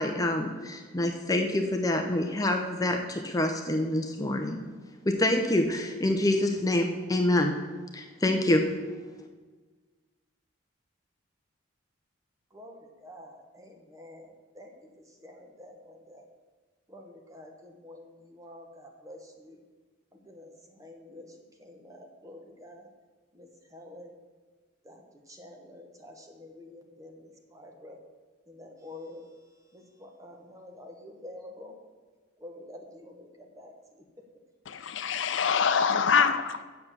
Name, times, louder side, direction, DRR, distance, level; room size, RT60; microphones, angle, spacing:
voice 1, 0.0-4.6 5.1-7.6 7.9-8.7, left 1 dB, 15° left, 4 dB, 0.6 m, -26 dB
voice 2, 12.5-14.7 15.2-16.2 16.9-19.6 20.1-22.9 23.3-24.1 24.8-28.0 28.5-29.3 29.7-31.8 32.4-33.7, left 1 dB, 15° right, 2 dB, 1.1 m, -48 dB
voice 3, 34.7-36.6, left 6 dB, 65° left, 11 dB, 0.5 m, -25 dB
8.0 x 6.7 x 7.2 m, 1.4 s
head